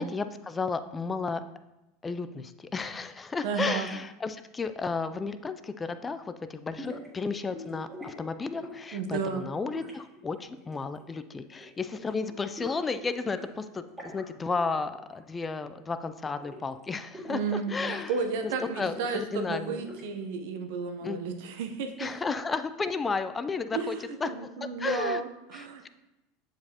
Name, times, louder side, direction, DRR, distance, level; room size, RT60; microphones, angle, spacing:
voice 1, 0.0-1.4 2.0-18.1 18.8-19.8 21.0-21.2 22.0-24.0 24.2-25.2 25.5-25.9, left 4 dB, 15° left, 11 dB, 0.3 m, -33 dB
voice 2, 3.4-3.9 8.9-9.5 17.3-22.1 23.7-25.9, right 5 dB, 75° right, 6 dB, 0.8 m, -33 dB
sound 1, 6.8-7.1 7.5-8.1 8.5-8.9 9.7-11.1 11.4-11.7 11.9-13.5 13.8-14.2 14.5-14.7 14.9-15.4 15.7-16.8 17.1-18.0 18.4-20.2, left 1 dB, 10° right, 1.9 m, -44 dB
7.5 x 4.7 x 2.8 m, 0.94 s
supercardioid pair, 130°, 0 cm